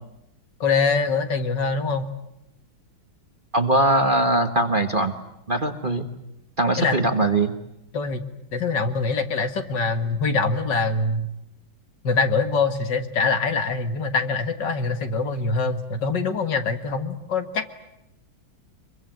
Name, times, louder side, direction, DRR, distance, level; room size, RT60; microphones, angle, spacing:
voice 1, 0.6-2.1 6.8-7.0 7.9-8.2 8.5-11.3 12.0-17.7, left 4 dB, 60° left, 9 dB, 2.3 m, -24 dB
voice 2, 3.5-5.1 5.5-6.1 6.6-7.5, right 2 dB, 25° right, 7 dB, 1.4 m, -21 dB
25.0 x 23.5 x 9.3 m, 0.84 s
omnidirectional pair, 2.2 m